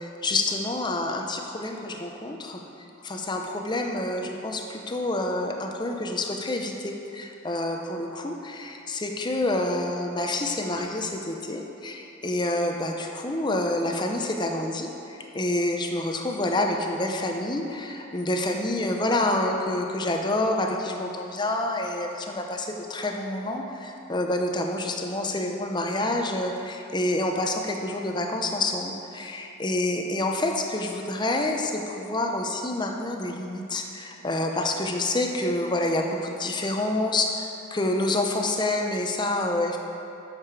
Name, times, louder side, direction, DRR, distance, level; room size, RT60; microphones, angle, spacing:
voice 1, 0.0-2.6 3.0-39.8, left 2 dB, 20° left, 2 dB, 0.6 m, -28 dB
8.9 x 6.7 x 4.7 m, 2.9 s
head